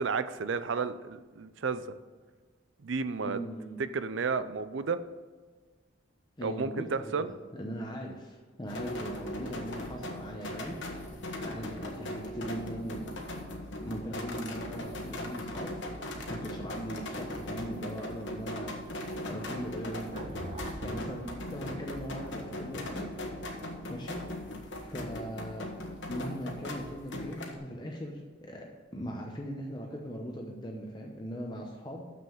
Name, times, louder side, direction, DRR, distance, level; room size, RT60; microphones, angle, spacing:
voice 1, 0.0-1.8 2.8-3.4 3.8-5.0 6.4-7.3, right 5 dB, 70° right, 13 dB, 0.5 m, -32 dB
voice 2, 3.2-3.9 6.4-11.1 11.4-13.3 13.8-15.8 16.3-20.2 20.4-23.1 23.9-24.5 24.8-25.7 26.1-28.7 28.9-32.2, equal, 20° left, 0 dB, 0.8 m, -40 dB
sound 1, 8.7-27.6, left 1 dB, 65° left, 1.3 m, -39 dB
sound 2, 20.1-24.4, right 1 dB, 30° right, 0.6 m, -46 dB
6.9 x 6.4 x 7.1 m, 1.4 s
head